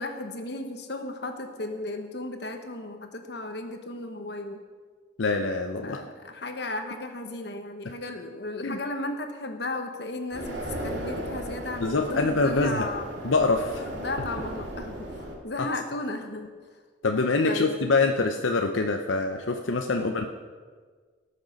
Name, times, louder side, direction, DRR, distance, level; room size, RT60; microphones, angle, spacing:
voice 1, 0.0-4.6 5.8-13.1 14.0-16.5 17.4-17.8 19.9-20.2, left 2 dB, 55° left, 6 dB, 1.2 m, -35 dB
voice 2, 5.2-6.0 8.6-8.8 11.8-12.9 13.2-13.9 15.6-15.7 17.0-20.3, left 3 dB, 80° left, 4 dB, 0.7 m, -25 dB
sound 1, 10.3-15.4, right 1 dB, 65° right, 2.7 m, -36 dB
18.0 x 6.6 x 5.3 m, 1.5 s
head